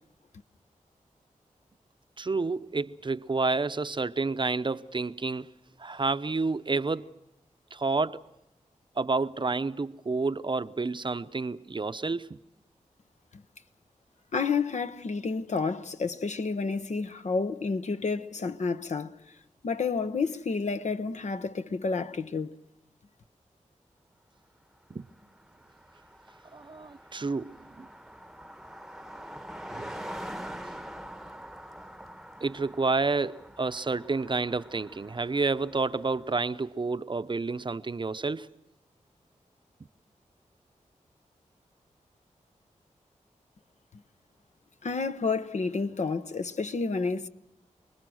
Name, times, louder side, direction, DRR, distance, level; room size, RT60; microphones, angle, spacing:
voice 1, 2.2-5.5 5.8-7.1 7.7-8.2 9.0-12.4 24.9-25.1 26.5-27.9 29.7-30.0 32.4-38.5, right 3 dB, 40° right, 0.7 m, -29 dB
voice 2, 14.3-19.2 19.6-22.6 44.8-47.3, left 4 dB, 65° left, 1.0 m, -30 dB
Car passing by, 24.9-25.0 25.2-36.2, equal, ahead, 1.0 m, -44 dB
29.5 x 20.5 x 6.4 m
cardioid pair, 65°, 13 cm